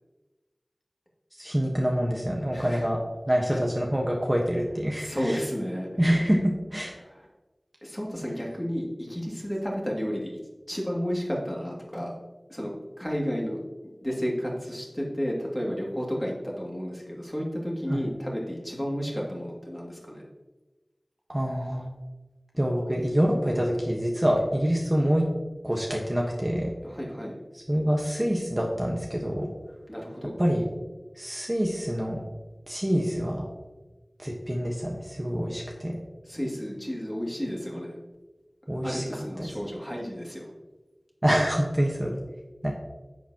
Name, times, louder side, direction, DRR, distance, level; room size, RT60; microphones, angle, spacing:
voice 1, 1.4-3.0 3.3-5.4 6.0-7.0 17.9-18.0 21.3-21.9 22.5-25.3 25.6-26.7 27.5-29.5 30.4-30.7 31.2-32.2 32.7-33.5 34.2-36.0 38.7-39.5 41.2-42.1 42.6-42.8, equal, 20° right, -1 dB, 1.3 m, -26 dB
voice 2, 2.5-2.8 3.5-3.6 5.0-5.9 7.0-7.2 7.8-10.3 10.7-12.2 12.5-13.6 14.0-20.2 26.8-27.4 29.9-30.3 36.3-38.0 38.8-40.5, equal, 15° left, -3 dB, 2.5 m, -32 dB
10.5 x 7.2 x 3.0 m, 1.1 s
wide cardioid pair, 40°, 0 cm